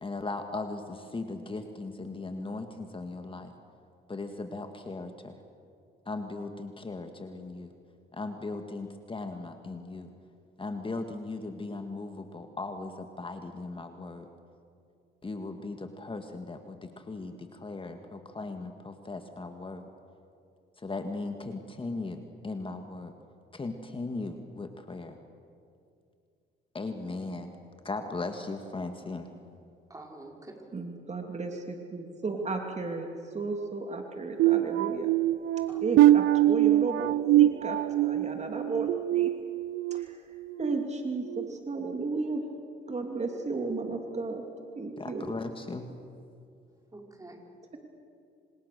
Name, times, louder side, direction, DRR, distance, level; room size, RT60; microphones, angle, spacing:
voice 1, 0.0-3.5 4.1-5.3 6.1-7.7 8.1-10.1 10.6-14.3 15.2-19.9 20.8-23.1 23.5-25.2 26.7-27.5 27.8-29.3 45.0-45.9, left 3 dB, 25° left, 6 dB, 1.9 m, -38 dB
voice 2, 29.9-30.7 35.7-36.2 46.9-47.5, right 2 dB, 15° right, 1 dB, 5.4 m, -48 dB
voice 3, 30.7-33.1 33.3-35.1 35.8-39.3 39.9-40.2 40.6-42.4 42.9-44.4 44.7-45.2, right 3 dB, 35° right, 3 dB, 2.7 m, -34 dB
sound 1, 34.4-40.0 40.5-40.8 41.3-41.5, right 14 dB, 85° right, 0.6 m, -24 dB
27.0 x 26.0 x 6.9 m, 2.5 s
cardioid pair, 90°, 20 cm